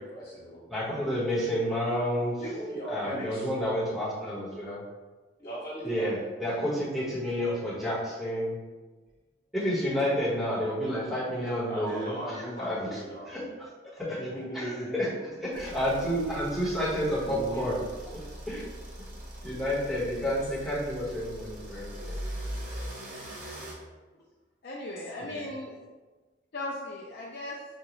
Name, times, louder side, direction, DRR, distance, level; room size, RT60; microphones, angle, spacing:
voice 1, 0.0-0.6 2.4-3.5 5.4-6.1 11.7-13.4 14.2-15.1 17.2-17.7 25.0-25.1, right 1 dB, 40° left, -9 dB, 1.3 m, -37 dB
voice 2, 0.7-2.4 2.9-4.8 5.8-8.6 9.5-12.1 12.3-13.0 13.3-14.2 14.5-15.1 15.4-17.8 18.1-18.6 19.4-22.2 25.3-25.4, equal, ahead, -8 dB, 1.1 m, -30 dB
sound 1, 15.5-23.7, equal, 45° right, 0.9 m, -41 dB
voice 3, 24.6-25.8 26.5-27.6, left 2 dB, 55° left, -4 dB, 0.4 m, -37 dB
5.0 x 2.3 x 3.0 m, 1.2 s
head